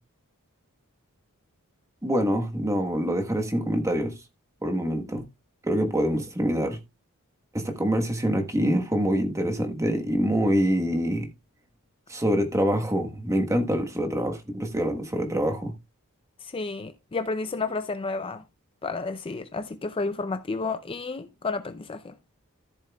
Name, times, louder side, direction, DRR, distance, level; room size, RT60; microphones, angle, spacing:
voice 1, 2.0-4.1 4.6-5.2 5.6-6.8 7.5-11.3 12.1-15.7, equal, 15° right, 1.2 m, -25 dB
voice 2, 16.4-18.4 18.8-22.1, left 3 dB, 25° left, 0.4 m, -31 dB
14.0 x 7.5 x 2.3 m
head